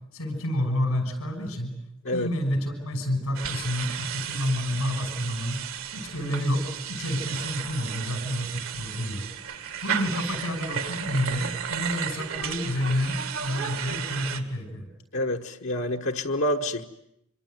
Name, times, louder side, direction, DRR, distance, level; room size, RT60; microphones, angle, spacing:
voice 1, 0.1-1.7 2.1-5.6 5.9-9.2 9.8-14.8, left 1 dB, 90° left, 7 dB, 6.2 m, -29 dB
sound 1, 3.3-14.4, right 8 dB, 75° right, 2.1 m, -34 dB
voice 2, 15.1-16.8, left 1 dB, 60° left, 2 dB, 1.2 m, -27 dB
26.0 x 24.0 x 9.2 m, 0.79 s
head